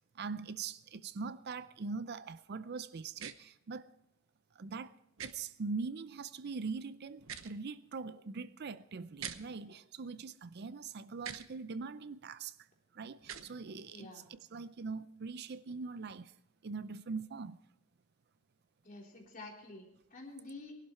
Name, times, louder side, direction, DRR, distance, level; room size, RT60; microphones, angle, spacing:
voice 1, 0.1-3.9 4.6-5.0 5.2-12.6 12.9-16.3 16.6-17.6, right 4 dB, 50° right, 0.5 m, -42 dB
sound 1, 3.2-3.3 5.2-5.3 7.2-7.5 9.2-9.4 11.2-11.5 13.2-13.5, right 8 dB, 70° right, 1.0 m, -43 dB
voice 2, 13.9-14.3 18.8-20.7, left 2 dB, 40° left, 3.6 m, -49 dB
19.5 x 11.5 x 4.5 m
head